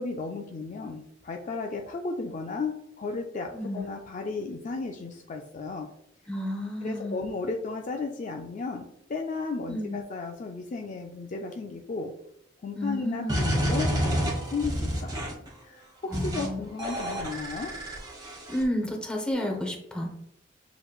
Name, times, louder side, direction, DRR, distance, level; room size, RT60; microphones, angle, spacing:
voice 1, 0.0-5.9 6.8-12.1 12.6-15.2 15.6-17.7, left 4 dB, 40° left, 3 dB, 0.4 m, -34 dB
voice 2, 3.5-3.8 6.3-7.2 9.7-10.0 12.8-13.4 16.1-16.6 18.5-20.1, left 1 dB, 5° left, 1 dB, 0.8 m, -31 dB
sound 1, 13.3-15.5 16.1-16.5 16.8-18.6, equal, 25° right, 1.3 m, -29 dB
6.8 x 3.0 x 2.3 m, 0.78 s
head